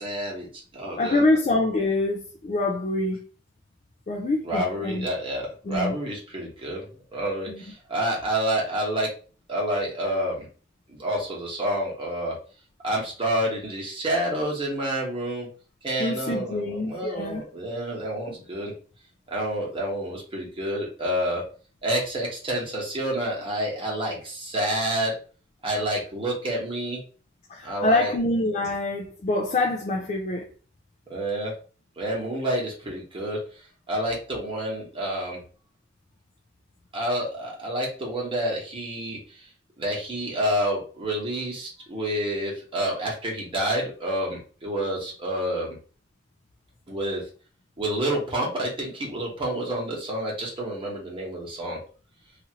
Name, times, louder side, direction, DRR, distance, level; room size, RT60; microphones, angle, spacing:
voice 1, 0.0-1.2 4.4-9.1 9.5-10.5 10.9-12.4 12.8-15.5 15.8-18.7 19.3-21.4 21.8-25.2 25.6-27.0 27.6-28.1 31.1-31.5 32.0-33.4 33.9-35.4 36.9-39.5 39.8-45.8 46.9-47.2 47.8-51.8, right 1 dB, 25° right, 1.1 m, -28 dB
voice 2, 1.0-3.2 4.1-5.1 5.6-5.9 7.5-7.6 16.0-17.4 27.5-30.5, left 2 dB, 35° left, 0.4 m, -25 dB
2.7 x 2.5 x 2.8 m
head